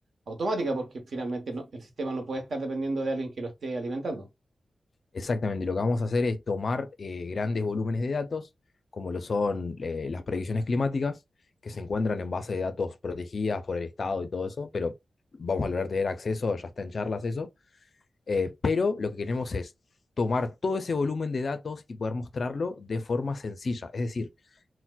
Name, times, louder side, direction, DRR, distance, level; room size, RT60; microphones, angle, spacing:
voice 1, 0.3-4.3, right 2 dB, 55° right, 0.9 m, -32 dB
voice 2, 5.1-8.5 8.9-11.2 11.6-15.0 15.3-17.5 18.3-19.7 20.2-24.3, left 3 dB, 45° left, 0.4 m, -29 dB
4.2 x 2.1 x 2.2 m
wide cardioid pair, 160°, 0 cm